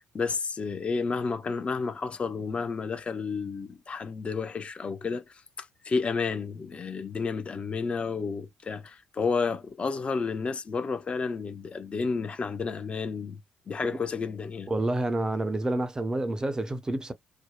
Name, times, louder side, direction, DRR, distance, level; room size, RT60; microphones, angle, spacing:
voice 1, 0.0-5.2 5.6-13.4 13.7-14.7, left 4 dB, 35° left, 0.6 m, -31 dB
voice 2, 14.7-17.1, right 2 dB, 20° right, 0.5 m, -28 dB
2.7 x 2.1 x 2.2 m
figure-of-eight pair, 45°, 3 cm